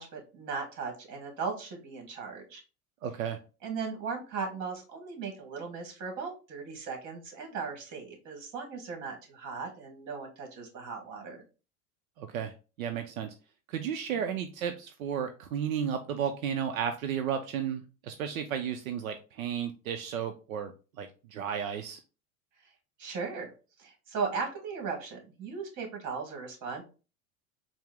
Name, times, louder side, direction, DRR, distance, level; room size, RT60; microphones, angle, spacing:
voice 1, 0.0-2.6 3.6-11.4 14.1-14.2 22.6-22.7 23.0-23.5 23.8-26.8, right 5 dB, 45° right, 3 dB, 1.5 m, -37 dB
voice 2, 3.0-3.4 12.2-12.5 12.8-13.3 13.7-20.7 21.0-22.0, right 8 dB, 85° right, 7 dB, 0.5 m, -33 dB
4.4 x 2.0 x 3.6 m, 0.33 s
hypercardioid pair, 85°, 41 cm